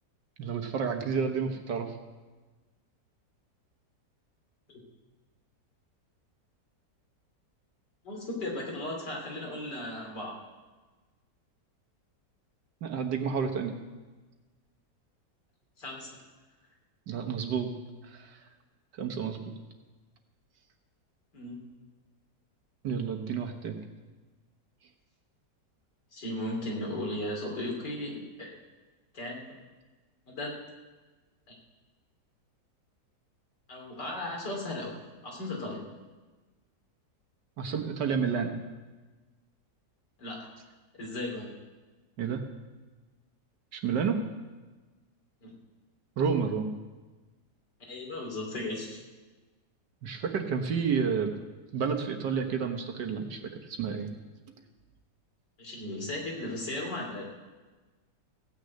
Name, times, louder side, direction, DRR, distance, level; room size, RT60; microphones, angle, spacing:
voice 1, 0.4-1.9 12.8-13.7 17.1-17.7 18.1-18.4 19.0-19.4 22.8-23.8 37.6-38.5 42.2-42.4 43.7-44.2 46.2-46.7 50.0-51.4 51.7-54.1, right 6 dB, 80° right, 4 dB, 1.9 m, -30 dB
voice 2, 8.0-10.4 15.8-16.2 21.3-21.6 26.1-28.6 29.1-29.4 30.3-30.6 31.5-31.6 33.7-35.0 35.2-35.9 40.2-40.5 40.9-41.5 45.4-45.5 47.9-49.0 55.6-57.2, left 1 dB, 80° left, -1 dB, 3.6 m, -36 dB
16.5 x 6.5 x 8.4 m, 1.3 s
omnidirectional pair, 1.8 m